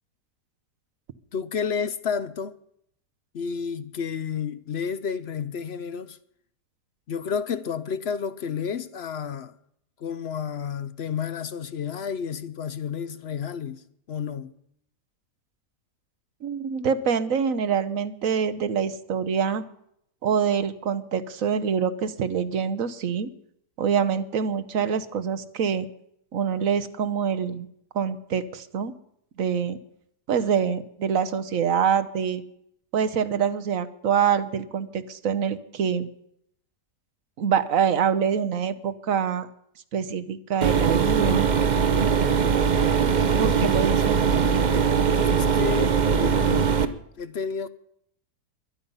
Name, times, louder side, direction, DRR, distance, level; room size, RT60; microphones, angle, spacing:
voice 1, 1.3-2.6 3.3-6.2 7.1-9.5 10.0-13.8 14.1-14.5 45.1-46.7 47.2-47.7, left 6 dB, 55° left, 0.7 m, -31 dB
voice 2, 16.4-19.6 20.2-23.3 23.8-25.9 26.3-27.7 27.9-28.9 29.4-29.8 30.3-32.4 32.9-36.1 37.4-39.5 39.9-41.5 43.4-44.2, right 7 dB, 60° right, 1.2 m, -25 dB
sound 1, 40.6-46.8, right 6 dB, 40° right, 0.6 m, -21 dB
22.5 x 9.6 x 5.5 m
omnidirectional pair, 1.7 m